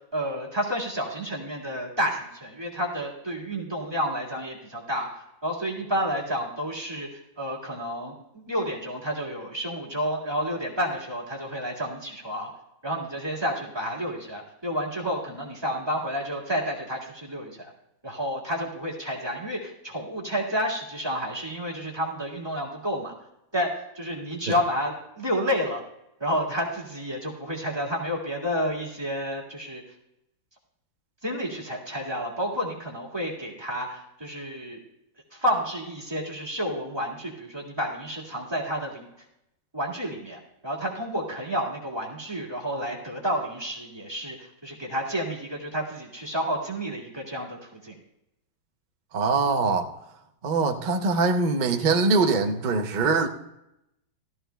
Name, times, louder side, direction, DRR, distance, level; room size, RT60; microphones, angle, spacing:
voice 1, 0.1-12.5 12.8-17.7 18.0-23.1 23.5-25.8 26.2-29.8 31.2-34.8 35.3-39.1 39.7-48.0, equal, 15° right, -3 dB, 1.7 m, -30 dB
voice 2, 49.1-49.9 50.4-53.3, right 4 dB, 75° right, 4 dB, 0.4 m, -23 dB
17.0 x 13.5 x 2.2 m, 0.85 s
omnidirectional pair, 2.1 m